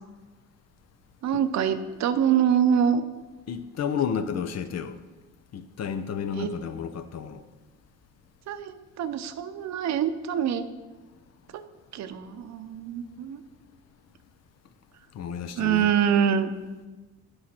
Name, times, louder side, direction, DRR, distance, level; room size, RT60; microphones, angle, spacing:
voice 1, 1.2-3.1 6.3-6.5 8.5-10.6 11.5-11.6 11.9-13.4 15.5-16.5, right 8 dB, 65° right, 10 dB, 0.7 m, -25 dB
voice 2, 3.5-5.0 5.5-7.4 15.1-15.9, left 7 dB, 60° left, 10 dB, 0.7 m, -31 dB
8.7 x 4.9 x 5.9 m, 1.2 s
cardioid pair, 90°, 30 cm